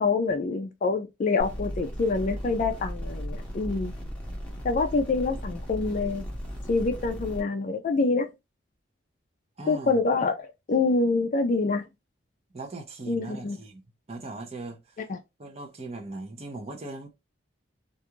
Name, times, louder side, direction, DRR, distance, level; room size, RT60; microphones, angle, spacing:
voice 1, 0.0-3.9 4.6-6.3 6.7-8.3 9.7-10.4 10.7-11.8 13.1-13.6 15.1-15.2, left 3 dB, 40° left, 0.3 m, -26 dB
sound 1, 1.4-7.4, equal, 5° left, 0.8 m, -36 dB
voice 2, 9.6-10.0 12.5-13.8 14.1-15.0 15.4-17.1, right 2 dB, 35° right, 0.6 m, -39 dB
2.5 x 2.3 x 2.9 m
head